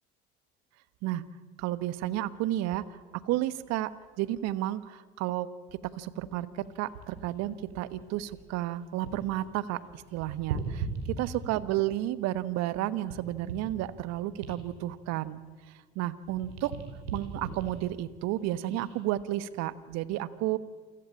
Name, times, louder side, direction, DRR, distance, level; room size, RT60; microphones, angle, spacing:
voice 1, 1.6-3.0 3.2-3.9 4.2-5.5 6.0-10.9 11.2-15.4 15.9-16.7 17.1-20.6, right 14 dB, 55° right, 15 dB, 1.3 m, -32 dB
sound 1, 6.6-9.4 9.7-11.8 12.3-15.9 16.2-19.0 19.5-19.7, right 5 dB, 75° right, 5.3 m, -40 dB
28.0 x 16.0 x 8.8 m, 1.5 s
hypercardioid pair, 65°, 31 cm